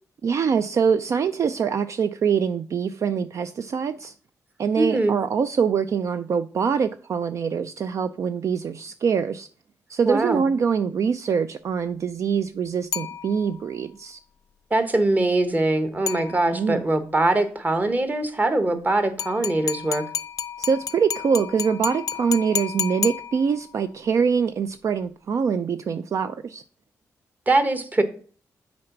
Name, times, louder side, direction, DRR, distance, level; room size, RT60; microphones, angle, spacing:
voice 1, 0.2-4.1 4.6-9.5 9.9-14.2 16.5-16.9 20.6-26.6, right 6 dB, 55° right, 0.4 m, -24 dB
voice 2, 4.8-5.2 10.1-10.4 14.7-20.0 27.5-28.0, right 2 dB, 25° right, 1.2 m, -22 dB
sound 1, 12.9-13.8 16.1-16.8 19.2-23.8, left 8 dB, 75° left, 0.4 m, -31 dB
6.5 x 4.0 x 5.8 m
cardioid pair, 80°, 6 cm